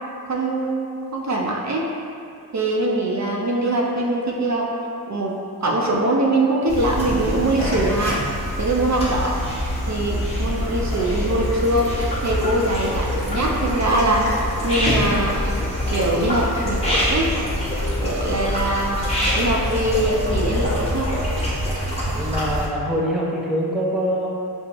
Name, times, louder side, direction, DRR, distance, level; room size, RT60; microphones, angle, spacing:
voice 1, 0.3-1.9 2.5-4.7 5.1-8.2 8.6-9.4 9.9-14.4 14.6-15.4 15.9-17.4 18.0-19.0 19.3-21.1, right 2 dB, 45° right, -2 dB, 0.5 m, -22 dB
sound 1, 6.7-22.7, left 1 dB, 15° left, 1.0 m, -24 dB
voice 2, 22.1-24.3, equal, ahead, -4 dB, 0.5 m, -24 dB
5.2 x 2.0 x 2.9 m, 2.5 s
cardioid pair, 55°, 38 cm